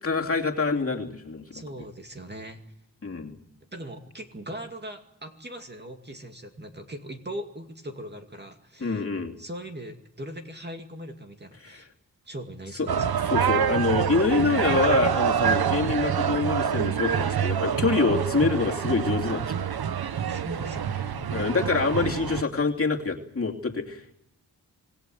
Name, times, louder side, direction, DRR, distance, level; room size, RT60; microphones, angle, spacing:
voice 1, 0.0-1.6 3.0-3.4 8.8-9.3 11.6-11.8 12.8-12.9 13.3-19.7 21.3-24.1, left 4 dB, 35° left, 0 dB, 2.8 m, -26 dB
voice 2, 1.5-2.6 3.7-9.0 9.4-11.9 12.2-13.4 20.0-21.3, right 1 dB, 25° right, 4 dB, 2.4 m, -40 dB
sound 1, 12.9-22.4, right 8 dB, 75° right, 0.9 m, -26 dB
26.5 x 18.5 x 7.8 m, 0.79 s
wide cardioid pair, 100°, 38 cm